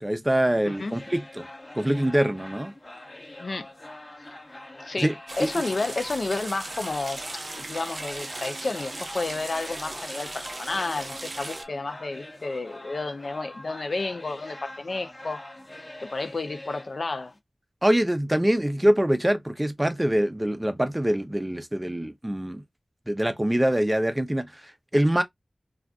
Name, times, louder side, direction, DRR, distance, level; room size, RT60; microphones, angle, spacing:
voice 1, 0.0-1.4 1.7-2.7 5.0-5.1 5.4-5.5 17.8-22.6 23.1-25.2, right 1 dB, 20° right, 0.6 m, -24 dB
voice 2, 0.6-1.0 3.4-3.7 4.8-7.2 7.6-15.5 16.0-17.3, left 3 dB, 80° left, 0.5 m, -31 dB
sound 1, 0.7-17.4, left 1 dB, 40° left, 1.1 m, -44 dB
sound 2, 5.3-11.6, right 2 dB, 65° right, 0.6 m, -38 dB
2.4 x 2.4 x 3.4 m
wide cardioid pair, 55°, 0 cm